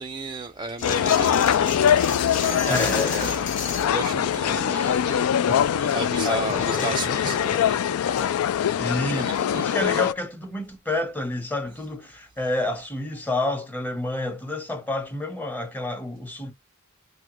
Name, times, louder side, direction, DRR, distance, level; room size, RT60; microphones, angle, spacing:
voice 1, 0.0-1.8 2.3-3.5 3.8-8.4 9.0-10.0, right 3 dB, 20° right, 0.4 m, -35 dB
sound 1, 0.8-10.1, left 9 dB, 75° left, 0.3 m, -23 dB
sound 2, 0.8-4.0 4.3-5.7 6.0-8.5, left 4 dB, 35° left, 0.9 m, -34 dB
voice 2, 2.7-3.3 4.4-5.0 6.2-6.7 8.8-16.5, left 2 dB, 10° left, 0.8 m, -29 dB
3.4 x 2.1 x 3.0 m
head